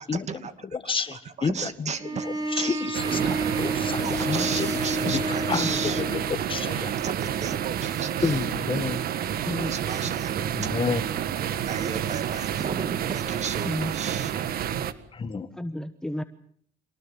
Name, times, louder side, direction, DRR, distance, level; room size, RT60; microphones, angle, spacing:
voice 1, 0.1-0.5 0.8-3.4 4.0-6.0 7.0-8.4 9.7-10.7 11.7-14.3, right 6 dB, 40° right, 11 dB, 2.4 m, -34 dB
voice 2, 0.7-1.9 2.2-3.2 3.6-6.9 8.2-9.0 10.6-11.0 15.1-15.5, left 5 dB, 30° left, 11 dB, 2.0 m, -30 dB
Bowed string instrument, 2.0-6.4, right 1 dB, 25° right, 3.9 m, -30 dB
sound 1, 2.9-14.9, right 10 dB, 60° right, 1.7 m, -29 dB
voice 3, 5.5-6.1 9.4-9.8 10.1-10.2 11.9-12.0 13.6-13.9 15.5-16.2, left 1 dB, 5° left, 9 dB, 1.2 m, -33 dB
27.0 x 19.5 x 7.4 m, 0.62 s
cardioid pair, 110°, 17 cm